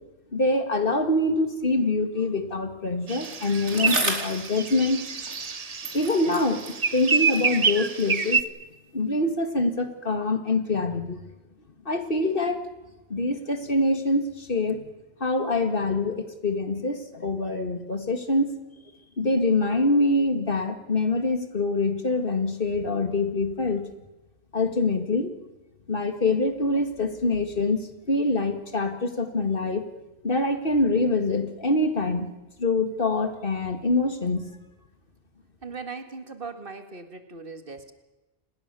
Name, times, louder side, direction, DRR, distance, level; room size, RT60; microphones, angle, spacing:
voice 1, 0.3-5.1 5.9-6.6 6.9-8.5 8.9-11.2 11.9-12.7 13.1-14.8 15.2-18.5 19.2-23.9 24.5-25.3 25.9-27.8 28.1-29.8 30.2-32.3 32.6-34.4, left 2 dB, 50° left, 8 dB, 2.3 m, -25 dB
sound 1, 3.1-8.4, right 5 dB, 35° right, 1.0 m, -27 dB
Bicycle, 3.2-5.6 5.8-8.2 9.0-9.1, right 2 dB, 85° right, 4.3 m, -34 dB
voice 2, 35.6-37.9, right 4 dB, 50° right, 9 dB, 2.0 m, -39 dB
28.0 x 20.5 x 6.9 m, 1.1 s
omnidirectional pair, 1.2 m